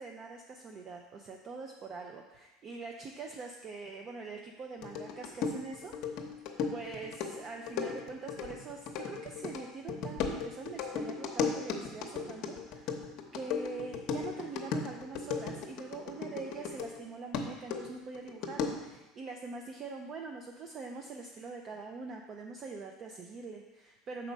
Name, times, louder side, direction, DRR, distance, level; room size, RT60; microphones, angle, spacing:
voice 1, 0.0-6.0 6.7-12.9 13.3-24.3, right 4 dB, 35° right, 2 dB, 0.5 m, -43 dB
sound 1, 4.8-17.0 17.3-19.0, left 5 dB, 55° left, 0.8 m, -36 dB
6.1 x 4.3 x 5.2 m, 1.1 s
supercardioid pair, 135°, 0 cm